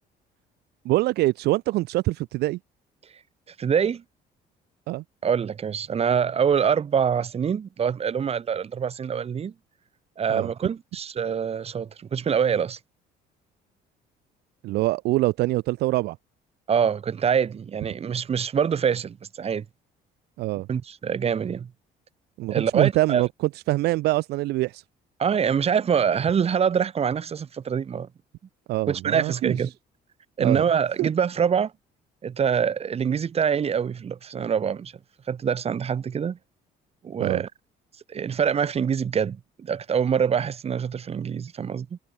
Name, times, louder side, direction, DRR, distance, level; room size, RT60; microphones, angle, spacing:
voice 1, 0.8-2.6 4.9-5.0 10.3-10.5 14.6-16.2 20.4-20.7 22.4-23.3 23.7-24.8 28.7-29.6 30.4-30.6 31.0-31.1 37.2-37.4, right 18 dB, 75° right, 0.5 m, -24 dB
voice 2, 3.6-4.0 5.2-9.5 10.2-12.8 16.7-19.6 20.7-21.7 22.5-23.2 25.2-28.1 28.9-29.7 30.4-31.7 32.2-34.9 35.3-36.4 37.0-37.5 38.1-42.0, right 7 dB, 35° right, 1.5 m, -25 dB
cardioid pair, 110°, 17 cm